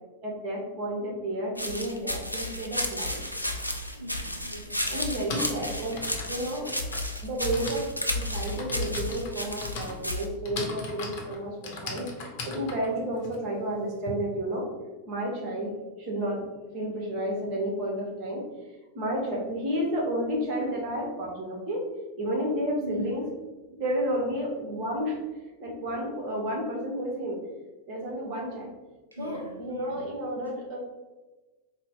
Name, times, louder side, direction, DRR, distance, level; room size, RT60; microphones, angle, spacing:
voice 1, 0.2-3.2 4.9-6.0 6.3-6.8 7.2-14.7 15.1-15.7 16.0-16.4 16.7-18.4 18.9-21.8 22.2-23.2 23.7-25.2 25.6-27.4 27.9-28.7 29.2-30.8, right 1 dB, 40° right, -2 dB, 1.3 m, -31 dB
sound 1, 1.6-10.3, left 1 dB, 90° left, 0.4 m, -32 dB
voice 2, 3.8-5.2 22.8-23.2 29.1-30.1, equal, 80° right, 0 dB, 0.4 m, -40 dB
Typing, 3.9-4.0 5.0-14.1, left 3 dB, 45° left, 0.7 m, -39 dB
3.9 x 2.2 x 3.7 m, 1.2 s
figure-of-eight pair, 90°, 0 cm